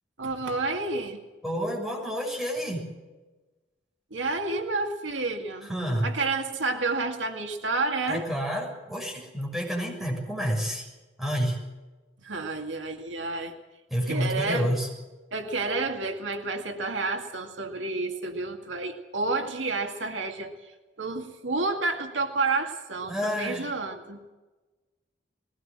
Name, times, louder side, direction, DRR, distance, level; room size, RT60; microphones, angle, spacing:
voice 1, 0.2-1.2 4.1-5.7 6.0-8.2 12.2-13.5 14.1-14.7 15.3-20.5 21.0-24.2, right 3 dB, 80° right, 4 dB, 2.2 m, -30 dB
voice 2, 1.4-2.9 5.6-6.1 8.1-10.9 11.2-11.6 13.9-14.9 23.1-23.7, equal, ahead, -2 dB, 6.5 m, -29 dB
20.5 x 18.0 x 7.6 m, 1.2 s
head